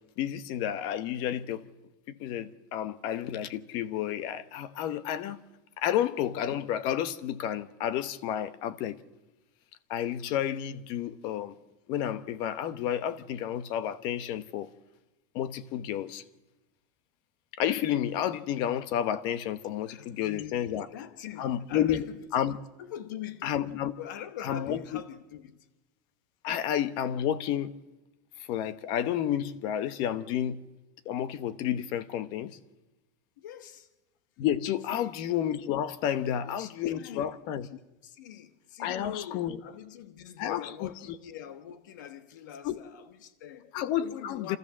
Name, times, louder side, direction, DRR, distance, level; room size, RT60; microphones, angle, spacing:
voice 1, 0.2-1.7 2.2-5.4 5.8-9.0 9.9-11.5 11.9-14.7 15.3-16.2 17.6-20.9 21.4-22.0 22.3-22.6 23.4-23.9 24.4-25.0 26.4-27.7 28.5-30.6 31.0-32.6 34.4-37.7 38.8-39.5 40.4-40.9 42.6-42.8 43.7-44.6, left 10 dB, 50° left, 1.0 m, -31 dB
voice 2, 19.9-22.5 22.8-23.7 24.0-25.6 33.4-33.9 34.9-35.2 36.2-37.4 38.0-43.7 44.0-44.6, left 10 dB, 80° left, 1.3 m, -43 dB
28.5 x 13.5 x 7.4 m
supercardioid pair, 150°, 10 cm